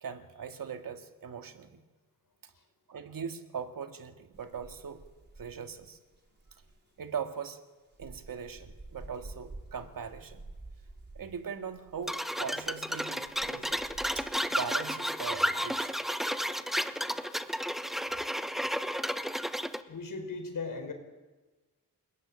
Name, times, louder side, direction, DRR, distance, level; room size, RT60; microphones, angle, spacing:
voice 1, 0.0-1.8 2.4-2.5 2.9-5.0 5.3-6.0 7.0-7.6 8.0-10.5 11.2-13.8 14.1-16.0, right 7 dB, 75° right, 6 dB, 2.2 m, -40 dB
sound 1, 4.3-6.8 7.9-12.1 12.6-12.9 13.2-14.5, right 2 dB, 30° right, 4.9 m, -50 dB
sound 2, 12.1-19.8, equal, ahead, 1.1 m, -32 dB
voice 2, 19.9-20.9, left 4 dB, 70° left, 6 dB, 5.0 m, -37 dB
28.5 x 20.0 x 9.0 m, 1.2 s
wide cardioid pair, 120°, 34 cm